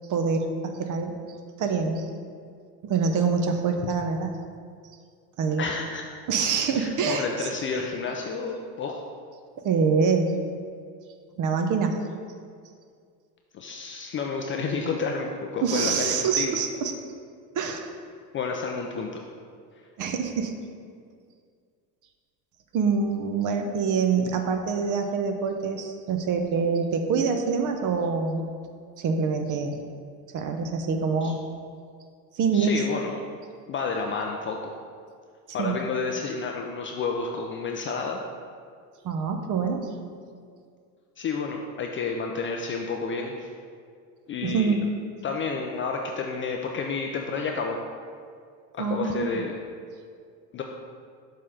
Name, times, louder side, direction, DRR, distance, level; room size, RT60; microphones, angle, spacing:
voice 1, 0.1-1.2 1.6-2.1 2.8-4.4 5.4-5.6 6.3-7.9 9.6-10.4 11.4-12.0 15.6-16.9 17.5-17.9 20.0-20.5 22.7-28.5 29.0-29.8 30.3-31.4 32.3-32.8 35.6-35.8 39.0-39.9 44.4-44.9 48.8-49.4, right 5 dB, 40° right, 5 dB, 0.7 m, -25 dB
voice 2, 5.6-6.0 6.7-9.0 13.5-16.6 18.3-19.2 31.2-31.3 32.5-33.2 33.7-34.7 35.5-38.2 41.2-43.5 44.3-44.7 45.2-47.8 48.7-49.5 50.5-50.6, left 4 dB, 25° left, 2 dB, 0.4 m, -30 dB
6.3 x 3.7 x 5.5 m, 2.2 s
hypercardioid pair, 85°, 50 cm